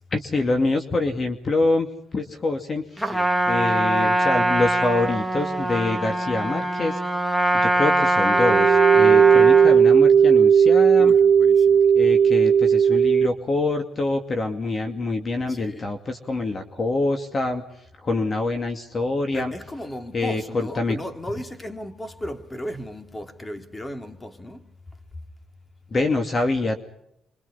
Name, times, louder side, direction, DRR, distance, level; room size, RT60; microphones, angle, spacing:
voice 1, 0.1-1.9 2.1-3.2 3.5-7.0 7.5-11.1 11.9-17.6 18.0-19.5 20.1-21.0 25.9-26.8, left 2 dB, 40° left, 2.5 m, -25 dB
voice 2, 3.0-3.3 9.1-9.4 11.0-11.8 15.5-15.9 19.3-24.6, equal, 15° left, 3.2 m, -36 dB
Trumpet, 3.0-9.8, right 1 dB, ahead, 2.6 m, -22 dB
sound 1, 8.3-13.3, right 7 dB, 55° right, 0.9 m, -15 dB
28.0 x 24.5 x 5.7 m
cardioid pair, 90°, 0 cm